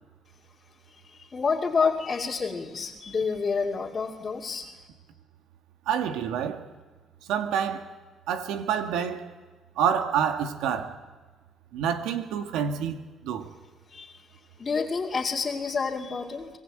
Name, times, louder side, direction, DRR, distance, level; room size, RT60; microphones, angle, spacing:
voice 1, 1.2-4.7 13.9-14.1 14.6-16.5, left 5 dB, 35° left, 2.6 m, -28 dB
voice 2, 5.9-6.6 7.2-7.9 8.3-9.3 9.8-11.0 11.7-13.5, right 8 dB, 85° right, 2.0 m, -28 dB
24.5 x 18.5 x 9.1 m
supercardioid pair, 75°, 0 cm